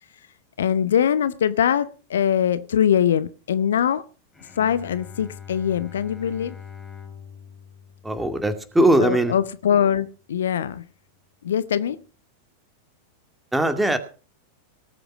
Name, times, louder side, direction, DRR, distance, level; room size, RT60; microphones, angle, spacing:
voice 1, 0.6-4.0 4.6-6.6 9.0-10.8 11.4-12.0, left 9 dB, 65° left, 0.7 m, -22 dB
Bowed string instrument, 4.3-9.6, left 7 dB, 10° left, 3.1 m, -43 dB
voice 2, 8.0-9.3 13.5-14.0, right 1 dB, 5° right, 2.3 m, -20 dB
19.0 x 7.9 x 6.2 m
figure-of-eight pair, 90°, 0 cm